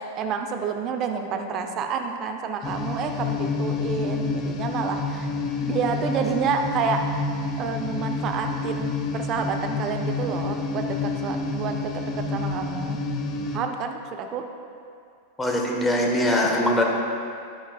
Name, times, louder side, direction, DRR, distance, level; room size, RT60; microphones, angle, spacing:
voice 1, 0.0-5.3 5.6-7.2 7.6-13.0 13.5-14.4, right 6 dB, 35° right, 5 dB, 0.7 m, -29 dB
sound 1, 2.6-13.6, left 3 dB, 30° left, 0.7 m, -28 dB
voice 2, 15.4-16.8, left 1 dB, 10° left, 0 dB, 1.2 m, -22 dB
10.0 x 10.0 x 2.4 m, 2.3 s
figure-of-eight pair, 90°, 0 cm